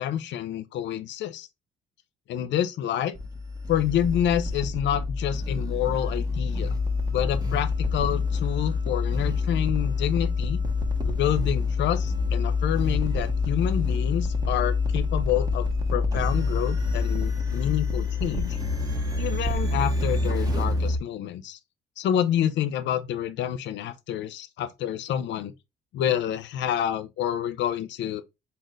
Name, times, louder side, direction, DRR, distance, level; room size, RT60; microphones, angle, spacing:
voice 1, 0.0-1.5 2.3-3.1 3.7-6.7 7.1-10.6 11.0-18.6 19.2-21.6 22.0-25.5 25.9-28.2, left 10 dB, 75° left, 0.7 m, -28 dB
sound 1, 3.1-21.0, left 3 dB, 20° right, 1.3 m, -26 dB
4.3 x 3.8 x 3.1 m
cardioid pair, 100°, 19 cm